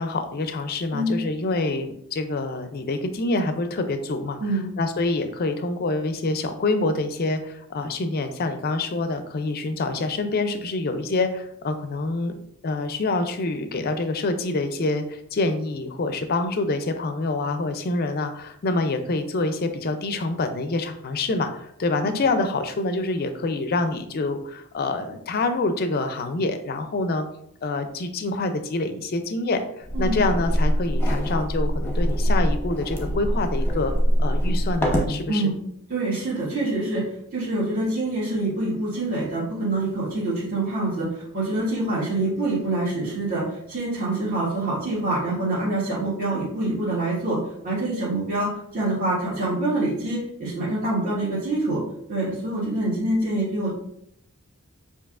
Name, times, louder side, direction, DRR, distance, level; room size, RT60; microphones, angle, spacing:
voice 1, 0.0-4.4 4.8-12.3 12.6-27.3 27.6-33.9 34.2-35.5, left 2 dB, 45° left, 8 dB, 0.4 m, -26 dB
voice 2, 0.9-1.2 4.4-4.7 22.0-22.2 29.9-30.2 35.3-35.5 35.9-37.0 37.3-47.4 47.6-51.8 52.1-53.7, right 2 dB, 40° right, -9 dB, 1.5 m, -26 dB
sound 1, 29.8-35.2, equal, 10° left, 0.8 m, -23 dB
6.8 x 2.8 x 2.4 m, 0.73 s
head